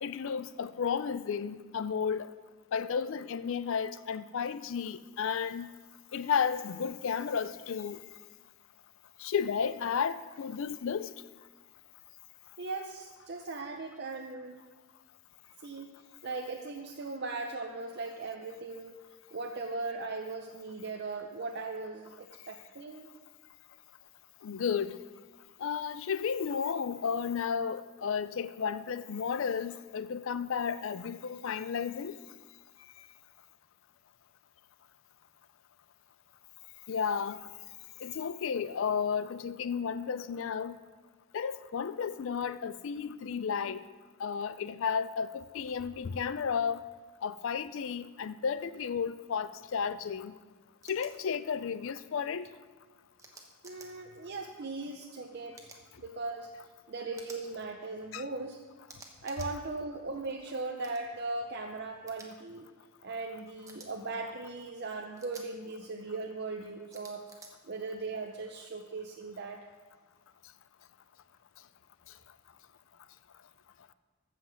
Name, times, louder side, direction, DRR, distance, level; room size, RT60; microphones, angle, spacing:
voice 1, 0.0-2.3 2.7-5.7 6.1-8.0 9.2-11.1 24.4-25.0 25.6-32.1 36.9-37.5 38.0-40.8 41.3-43.8 44.2-46.8 47.2-50.3 50.8-52.5 58.1-58.2, left 6 dB, 60° left, 14 dB, 0.4 m, -33 dB
voice 2, 12.6-14.6 15.6-15.9 16.2-19.0 19.3-23.2 53.6-55.6 56.0-56.5 56.9-58.6 59.2-62.7 63.0-67.2 67.6-69.6, right 3 dB, 50° right, 3 dB, 0.7 m, -38 dB
sound 1, 50.8-51.1 53.2-53.9 55.5-55.8 57.1-57.4 58.9-59.5 60.8-61.0 62.1-62.3 63.7-63.9 65.2-65.5 66.9-67.5, right 3 dB, 15° right, 1.2 m, -51 dB
15.0 x 5.8 x 6.4 m, 1.4 s
head